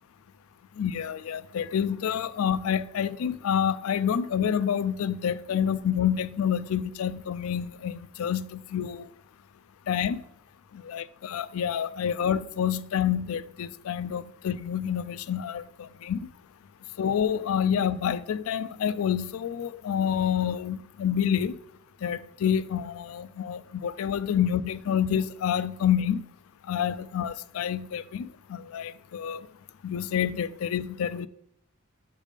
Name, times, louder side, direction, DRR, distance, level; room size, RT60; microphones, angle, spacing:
voice 1, 0.8-9.1 9.9-10.2 10.7-16.3 17.0-21.6 22.0-26.3 26.6-29.5 29.8-31.3, left 8 dB, 80° left, 0.3 m, -28 dB
7.3 x 3.5 x 4.9 m
head